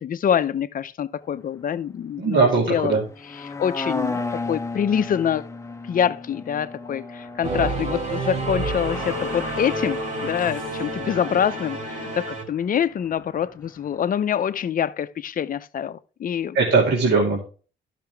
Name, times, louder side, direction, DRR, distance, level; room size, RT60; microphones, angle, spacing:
voice 1, 0.0-2.4 2.7-3.0 3.4-5.4 5.9-16.6, left 8 dB, 45° left, 0.6 m, -25 dB
voice 2, 2.2-3.0 16.5-17.4, right 4 dB, 60° right, 2.4 m, -19 dB
sound 1, 3.0-14.1 14.4-14.5, left 3 dB, 15° left, 0.8 m, -35 dB
Singing / Musical instrument, 7.4-12.4, right 2 dB, 40° right, 2.5 m, -29 dB
12.0 x 5.8 x 3.4 m
cardioid pair, 90°, 20 cm